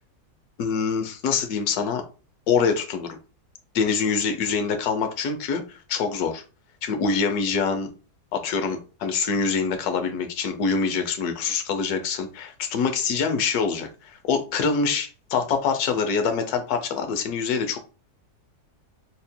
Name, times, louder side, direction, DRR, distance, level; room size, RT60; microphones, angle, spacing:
voice 1, 0.6-2.0 2.5-3.2 3.7-5.6 5.9-6.4 6.8-7.9 8.3-13.9 14.3-17.8, left 5 dB, 75° left, 7 dB, 1.2 m, -25 dB
4.1 x 3.6 x 2.2 m, 0.34 s
omnidirectional pair, 1.7 m